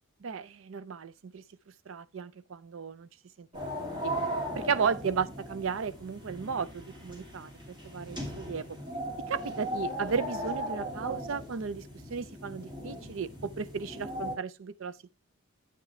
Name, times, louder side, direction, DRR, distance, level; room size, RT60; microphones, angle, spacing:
voice 1, 0.2-1.4 1.9-3.1 3.4-3.5 3.8-4.1 4.5-7.5 7.8-8.8 9.3-15.1, right 6 dB, 65° right, 0.5 m, -34 dB
sound 1, 3.5-14.3, equal, 20° right, 2.7 m, -38 dB
8.1 x 7.3 x 3.2 m
head